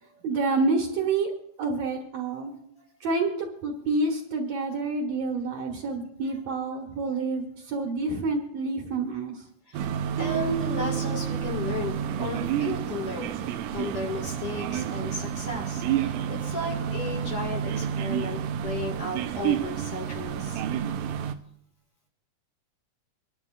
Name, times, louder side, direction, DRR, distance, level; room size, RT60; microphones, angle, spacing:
voice 1, 0.0-1.3 1.6-2.5 3.0-9.4, right 3 dB, 60° right, 1 dB, 2.5 m, -28 dB
sound 1, 9.7-21.3, right 9 dB, 80° right, 2.2 m, -30 dB
voice 2, 10.2-20.6, left 2 dB, 50° left, 0 dB, 2.6 m, -34 dB
25.5 x 11.5 x 2.4 m, 0.72 s
omnidirectional pair, 3.8 m